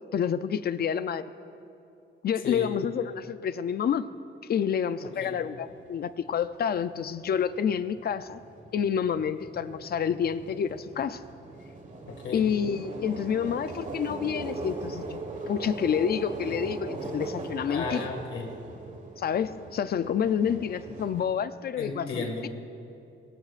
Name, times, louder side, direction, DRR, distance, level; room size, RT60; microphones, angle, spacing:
voice 1, 0.1-1.3 2.2-4.1 4.5-8.4 8.7-11.2 12.3-15.2 15.5-18.0 19.2-22.5, left 8 dB, 50° left, 12 dB, 0.5 m, -28 dB
voice 2, 5.0-5.4 12.1-12.4 17.6-18.5 21.8-22.5, left 4 dB, 70° left, 1 dB, 2.1 m, -34 dB
sound 1, 5.7-5.9 6.3-21.2, right 3 dB, 40° right, 1.4 m, -40 dB
23.5 x 19.0 x 2.5 m, 2.7 s
cardioid pair, 145°, 21 cm